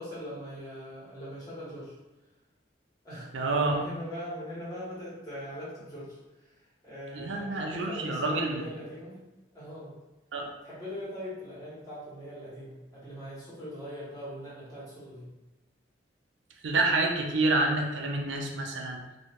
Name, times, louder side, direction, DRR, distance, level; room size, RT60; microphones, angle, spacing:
voice 1, 0.0-1.9 3.0-3.3 3.5-6.5 6.8-9.2 9.5-9.9 10.6-15.3, equal, 20° left, -10 dB, 1.4 m, -41 dB
voice 2, 3.3-3.7 7.1-8.6 10.3-10.5 16.6-19.0, right 2 dB, 90° right, 1 dB, 0.5 m, -28 dB
3.1 x 2.7 x 2.9 m, 1.1 s
head